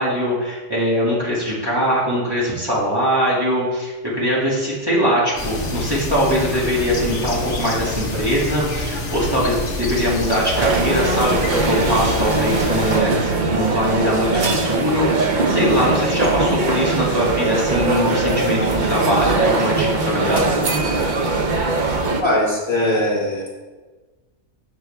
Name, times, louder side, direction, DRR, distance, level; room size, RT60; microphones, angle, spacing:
voice 1, 0.0-20.5, equal, 15° right, -7 dB, 2.1 m, -21 dB
sound 1, 5.4-13.0, left 2 dB, 60° left, 1.6 m, -27 dB
sound 2, 10.6-22.2, right 3 dB, 45° right, 0.7 m, -20 dB
voice 2, 22.2-23.4, left 1 dB, 20° left, -6 dB, 2.1 m, -20 dB
7.4 x 6.5 x 3.4 m, 1.2 s
omnidirectional pair, 1.4 m